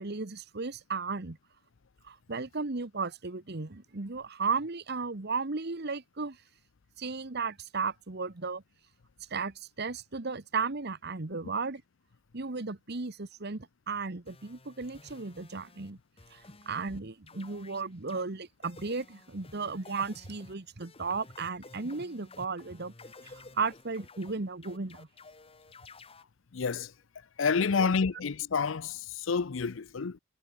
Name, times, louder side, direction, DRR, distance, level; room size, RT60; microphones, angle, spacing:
voice 1, 0.0-1.4 2.0-6.4 7.0-8.6 9.3-11.8 12.3-16.0 16.3-22.9 23.2-25.1 27.7-27.9, right 4 dB, 55° right, 1.3 m, -35 dB
sound 1, 14.3-15.9 16.2-17.0 17.3-18.2 18.6-26.2, left 3 dB, 30° left, 1.7 m, -53 dB
voice 2, 26.5-26.9 27.4-30.2, left 5 dB, 70° left, 0.6 m, -29 dB
head